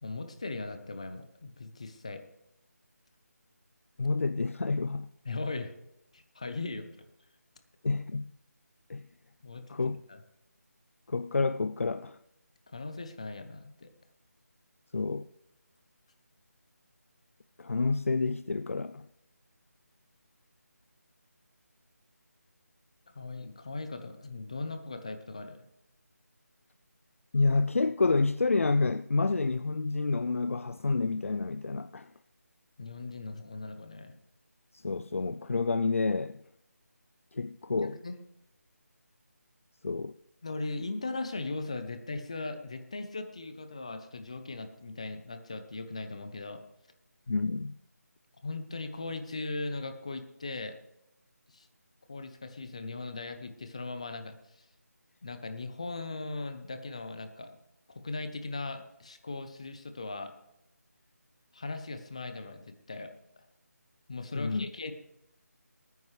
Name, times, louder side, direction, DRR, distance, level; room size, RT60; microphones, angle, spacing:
voice 1, 0.0-2.2 5.2-5.7 6.1-6.9 9.4-10.2 12.7-13.9 23.1-25.6 32.8-34.2 37.8-38.2 40.4-46.6 48.4-50.8 51.5-51.7 52.1-54.7 55.2-57.6 57.9-60.3 61.5-63.5 64.1-64.9, left 3 dB, 20° left, 0.7 m, -39 dB
voice 2, 4.0-5.1 7.8-8.3 8.9-9.0 9.7-10.0 11.1-12.2 14.9-15.3 17.6-19.1 27.3-32.1 34.7-36.4 37.3-38.0 39.8-40.1 47.3-47.8 64.3-64.7, left 3 dB, 55° left, 0.4 m, -29 dB
20.0 x 9.3 x 3.3 m
figure-of-eight pair, 175°, 9 cm